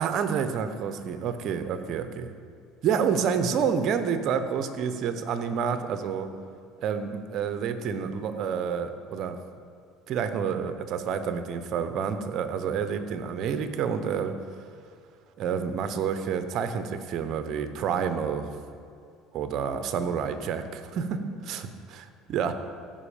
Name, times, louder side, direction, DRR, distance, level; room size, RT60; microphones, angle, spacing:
voice 1, 0.0-2.3 2.8-6.3 6.8-9.4 10.1-14.3 15.4-18.5 19.3-21.7 22.3-22.5, right 7 dB, 55° right, 9 dB, 0.8 m, -28 dB
15.5 x 5.4 x 5.0 m, 2.3 s
supercardioid pair, 110°, 0 cm